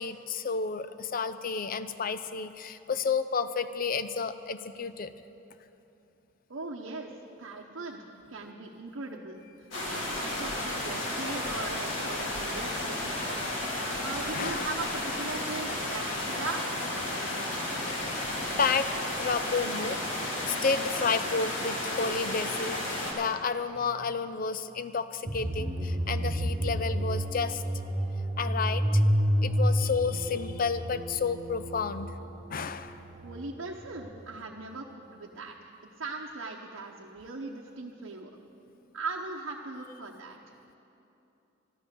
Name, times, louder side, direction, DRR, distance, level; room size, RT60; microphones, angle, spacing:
voice 1, 0.0-5.1 13.0-13.9 14.3-14.7 17.8-18.1 18.6-18.9 19.2-20.0 20.5-22.8 23.1-27.6 28.4-29.0 29.4-32.1 32.5-33.0, left 5 dB, 45° left, 12 dB, 0.5 m, -31 dB
voice 2, 6.5-7.1 7.4-8.0 8.3-13.4 14.0-16.8 33.2-35.7 36.0-38.3 38.9-40.5, right 3 dB, 80° right, -1 dB, 0.9 m, -39 dB
sound 1, 9.7-23.1, left 1 dB, 70° left, 2.9 m, -33 dB
sound 2, 25.3-34.1, equal, 35° right, 1.2 m, -30 dB
13.0 x 11.5 x 6.8 m, 2.9 s
head